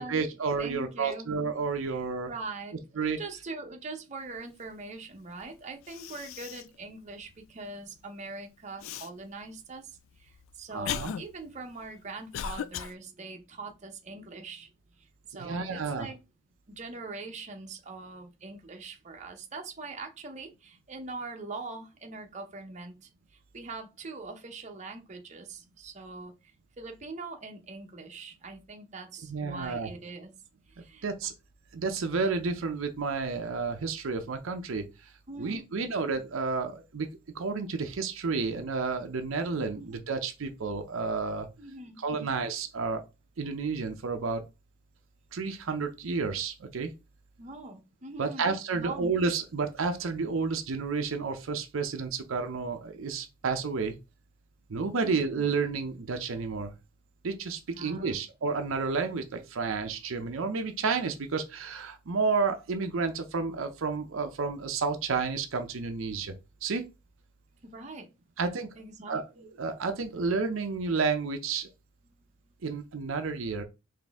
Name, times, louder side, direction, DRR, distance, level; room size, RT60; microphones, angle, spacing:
voice 1, 0.0-2.3 3.0-3.2 10.7-11.1 15.3-16.1 29.3-29.9 31.0-31.3 31.7-34.8 35.4-37.1 37.3-41.5 42.0-43.0 43.4-44.4 45.3-46.9 48.2-53.9 54.7-56.7 57.2-66.3 66.6-66.8 68.4-68.7 69.1-69.2 69.6-71.7 72.6-73.6, right 4 dB, 75° right, 0.6 m, -31 dB
voice 2, 0.6-1.4 1.8-2.0 2.2-14.7 15.0-16.2 16.7-30.3 30.7-31.1 35.3-35.7 39.7-39.9 41.6-42.0 47.4-49.1 55.0-55.2 57.7-58.2 67.6-68.1 68.7-69.5, right 3 dB, 35° right, 0.7 m, -42 dB
Cough, 5.4-5.5 5.8-6.8 7.2-7.3 8.8-9.1 9.9-12.9, left 9 dB, 75° left, 0.3 m, -37 dB
4.1 x 2.7 x 3.4 m
head